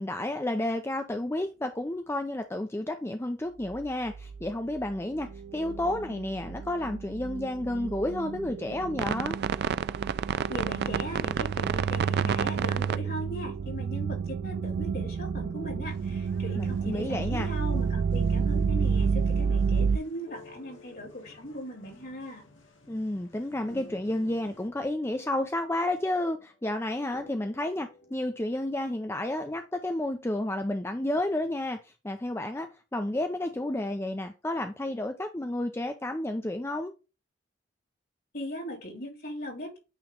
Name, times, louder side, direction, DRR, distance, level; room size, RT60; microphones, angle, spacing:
voice 1, 0.0-9.4 16.6-17.5 22.9-36.9, left 1 dB, 15° left, 0.5 m, -31 dB
sound 1, 3.7-3.8 4.1-4.5 4.8-20.0, right 6 dB, 55° right, 0.3 m, -29 dB
voice 2, 10.5-22.5 38.3-39.8, equal, 55° left, 3.1 m, -39 dB
sound 2, 15.8-24.7, left 2 dB, 75° left, 1.5 m, -56 dB
sound 3, 16.8-19.9 20.3-23.2 23.5-29.4, left 2 dB, 35° left, 1.2 m, -55 dB
8.9 x 3.1 x 3.7 m
head